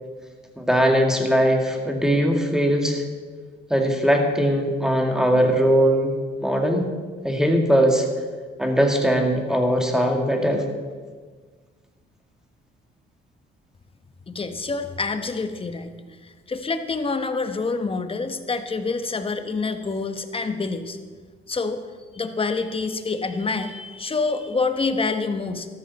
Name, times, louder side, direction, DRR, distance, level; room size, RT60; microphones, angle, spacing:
voice 1, 0.6-3.0 3.7-6.1 6.4-6.9 7.2-8.1 8.6-10.7, equal, 5° right, 2 dB, 2.2 m, -20 dB
voice 2, 14.3-15.9 16.2-21.0 21.5-21.8 22.1-25.7, left 4 dB, 25° left, 8 dB, 1.1 m, -27 dB
13.5 x 13.0 x 4.2 m, 1.5 s
cardioid pair, 90°, 20 cm